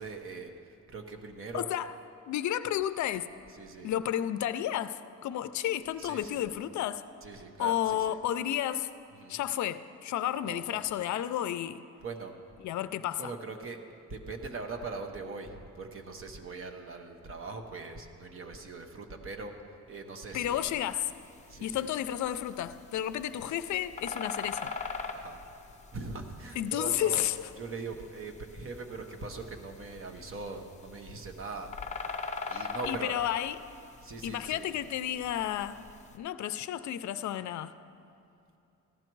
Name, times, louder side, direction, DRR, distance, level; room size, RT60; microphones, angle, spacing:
voice 1, 0.0-1.7 3.5-3.9 6.0-6.5 7.2-8.2 9.1-9.4 10.4-10.8 12.0-12.4 13.2-13.8 14.1-19.5 19.9-20.7 21.5-21.9 25.1-25.5 25.9-27.2 27.6-31.7 32.5-33.1 34.0-34.7, right 3 dB, 45° right, 4 dB, 0.9 m, -41 dB
voice 2, 1.5-1.9 2.3-3.3 3.8-7.0 7.6-8.9 9.3-11.8 12.6-13.3 20.3-21.1 21.6-24.7 26.6-27.3 32.9-33.6 34.2-35.9 36.1-37.8, left 11 dB, 70° left, 13 dB, 0.4 m, -32 dB
sound 1, 20.4-36.2, left 4 dB, 25° left, 0.7 m, -43 dB
14.5 x 11.5 x 4.6 m, 2.7 s
wide cardioid pair, 170°, 30 cm